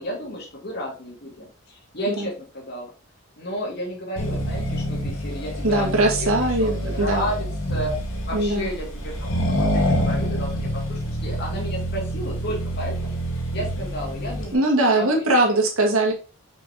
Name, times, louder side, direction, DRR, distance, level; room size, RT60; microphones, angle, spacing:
voice 1, 0.0-2.9 3.4-7.9 8.3-13.2 13.5-14.6 14.9-15.4, equal, 45° left, -2 dB, 2.1 m, -32 dB
Accelerating revving vroom, 4.2-14.5, equal, 65° left, 2.0 m, -27 dB
voice 2, 5.6-7.3 8.3-8.7 14.5-16.1, right 2 dB, 75° right, 1 dB, 2.1 m, -21 dB
6.0 x 5.8 x 2.8 m, 0.35 s
head